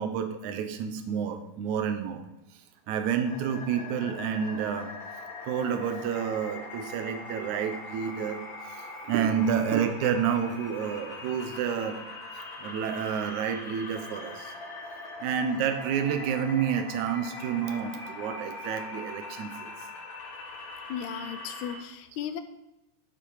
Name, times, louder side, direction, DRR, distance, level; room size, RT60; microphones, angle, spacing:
voice 1, 0.0-2.2 2.9-4.9 5.4-8.4 9.0-12.0 12.6-14.5 15.2-19.7, right 7 dB, 75° right, 7 dB, 2.2 m, -29 dB
sound 1, 3.0-21.8, left 2 dB, 45° left, 2.4 m, -41 dB
voice 2, 20.9-22.4, left 8 dB, 75° left, 10 dB, 1.9 m, -35 dB
11.0 x 7.2 x 4.8 m, 0.91 s
omnidirectional pair, 3.6 m